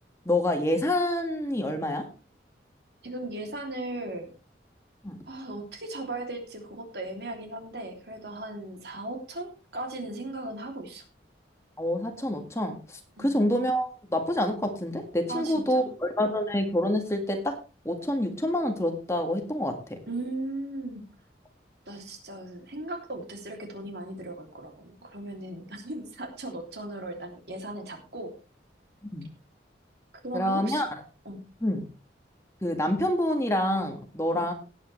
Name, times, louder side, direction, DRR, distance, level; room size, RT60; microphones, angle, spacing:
voice 1, 0.3-2.1 5.0-5.2 11.8-17.6 17.8-20.0 29.1-29.3 30.3-30.9 31.6-31.9 32.6-34.5, left 1 dB, 15° left, 4 dB, 1.9 m, -27 dB
voice 2, 3.0-4.3 5.3-11.0 13.2-13.4 15.3-15.9 20.1-21.0 21.9-28.3 30.2-30.9 31.2-31.4 34.3-34.4, right 2 dB, 65° right, 3 dB, 3.0 m, -37 dB
18.0 x 8.9 x 3.3 m, 0.32 s
head